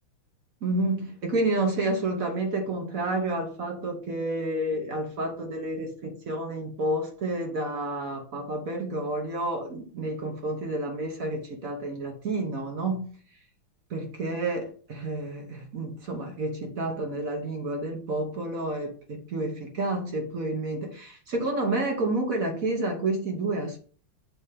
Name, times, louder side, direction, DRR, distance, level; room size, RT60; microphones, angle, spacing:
voice 1, 0.6-13.1 13.9-23.8, right 2 dB, 50° right, 1.2 m, -30 dB
7.8 x 3.0 x 5.0 m
omnidirectional pair, 2.3 m